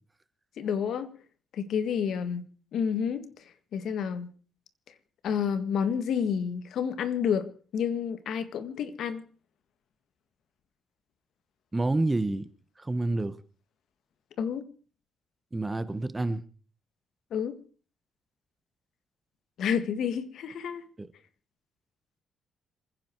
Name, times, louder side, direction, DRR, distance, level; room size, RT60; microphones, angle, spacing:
voice 1, 0.6-1.1 1.5-2.5 2.7-3.3 3.7-4.3 5.2-7.5 7.7-9.2 14.4-14.7 17.3-17.6 19.6-20.8, left 7 dB, 70° left, 1.8 m, -29 dB
voice 2, 11.7-12.5 12.8-13.3 15.5-16.4 21.0-21.1, right 2 dB, 20° right, 1.3 m, -28 dB
27.5 x 10.5 x 4.7 m
cardioid pair, 90°, 0 cm